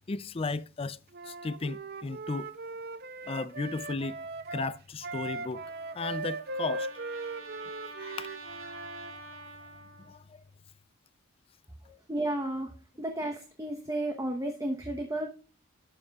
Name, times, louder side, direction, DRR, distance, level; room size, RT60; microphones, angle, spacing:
voice 1, 0.1-1.0 1.3-2.5 3.2-4.2 4.5-5.6 5.9-6.9 8.0-8.3 8.7-8.8 9.4-9.5 10.1-10.4, left 3 dB, 30° left, 0.4 m, -35 dB
Wind instrument woodwind instrument, 1.1-9.1, right 2 dB, 50° right, 0.6 m, -39 dB
Trumpet, 5.4-10.2, right 3 dB, 90° right, 1.8 m, -47 dB
voice 2, 11.8-15.3, right 1 dB, 15° right, 1.0 m, -33 dB
12.0 x 7.9 x 2.4 m
head